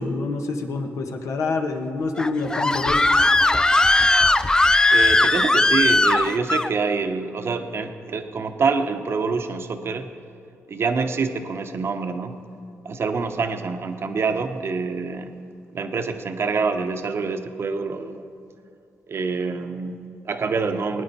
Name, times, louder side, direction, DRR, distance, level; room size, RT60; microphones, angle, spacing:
voice 1, 0.0-3.0, left 3 dB, 75° left, 4 dB, 1.4 m, -26 dB
Screaming, 2.2-6.7, left 2 dB, 15° left, 0.3 m, -18 dB
voice 2, 4.9-10.1 10.7-12.4 12.8-15.3 15.7-18.3 19.1-21.0, right 4 dB, 50° right, 7 dB, 0.9 m, -26 dB
20.5 x 9.7 x 4.2 m, 2.5 s
cardioid pair, 80°, 5 cm